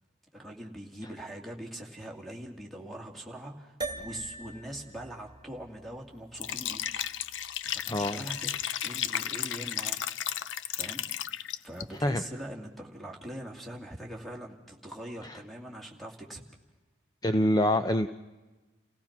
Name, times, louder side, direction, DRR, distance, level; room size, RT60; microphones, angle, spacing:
voice 1, 0.3-6.8 7.7-10.0 10.7-11.0 11.6-16.4, right 1 dB, ahead, 2 dB, 2.5 m, -42 dB
sound 1, 3.8-8.4, right 3 dB, 20° right, 2.0 m, -44 dB
Liquid, 6.3-11.8, left 11 dB, 65° left, 0.6 m, -34 dB
voice 2, 7.9-8.2 12.0-12.2 17.2-18.1, left 1 dB, 20° left, 10 dB, 0.6 m, -25 dB
29.0 x 17.0 x 5.9 m, 1.2 s
head